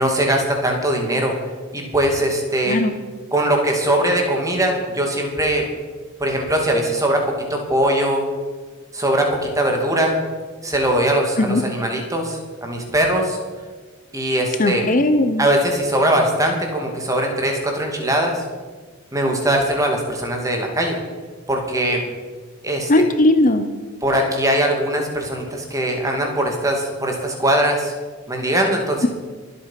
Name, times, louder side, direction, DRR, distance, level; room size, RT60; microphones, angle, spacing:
voice 1, 0.0-1.3 1.7-2.8 3.3-5.6 6.2-7.2 7.5-8.2 8.9-10.2 10.6-13.4 14.1-14.9 15.4-18.4 19.1-21.0 21.5-22.0 22.6-22.9 24.0-27.9 28.3-29.1, right 1 dB, 15° right, 2 dB, 2.6 m, -20 dB
voice 2, 14.6-15.4 22.9-23.7, left 1 dB, 40° left, 8 dB, 0.8 m, -17 dB
23.5 x 8.4 x 5.9 m, 1.4 s
head